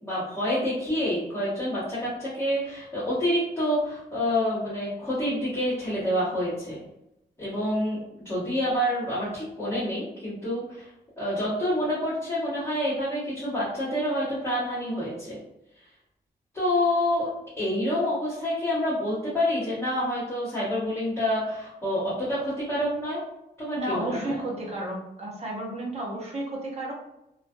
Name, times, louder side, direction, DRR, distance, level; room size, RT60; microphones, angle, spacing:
voice 1, 0.0-6.8 7.4-8.0 8.2-10.9 11.2-15.4 16.5-17.3 17.6-23.2 23.6-24.4, left 1 dB, 15° left, -12 dB, 1.1 m, -27 dB
voice 2, 23.8-26.9, right 1 dB, 40° right, -3 dB, 0.8 m, -32 dB
2.4 x 2.4 x 2.5 m, 0.85 s
wide cardioid pair, 175°, 17 cm